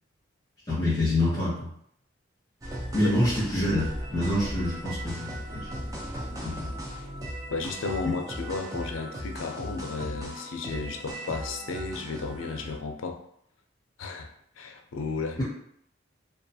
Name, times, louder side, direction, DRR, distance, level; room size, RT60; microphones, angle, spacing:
voice 1, 0.7-1.7 2.9-5.8 6.4-6.8, left 1 dB, 20° left, -10 dB, 0.8 m, -27 dB
sound 1, 2.6-12.8, equal, 20° right, 0.4 m, -37 dB
voice 2, 7.5-13.2 14.0-15.4, left 4 dB, 85° left, 3 dB, 0.4 m, -33 dB
2.3 x 2.3 x 2.6 m, 0.69 s
head